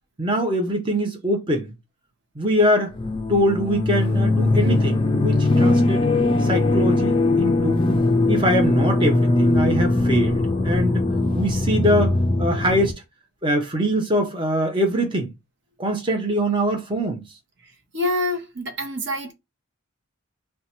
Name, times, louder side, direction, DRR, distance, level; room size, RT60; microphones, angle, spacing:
voice 1, 0.2-1.7 2.4-2.9 3.3-6.1 6.4-7.9 8.3-11.1 11.3-12.1 12.4-13.0 13.4-15.3 15.8-17.2, equal, 20° right, 0.7 m, -23 dB
sound 1, 3.0-12.9, left 2 dB, 25° left, 0.4 m, -20 dB
voice 2, 17.9-19.3, left 1 dB, 55° right, 0.8 m, -26 dB
2.7 x 2.2 x 4.1 m
head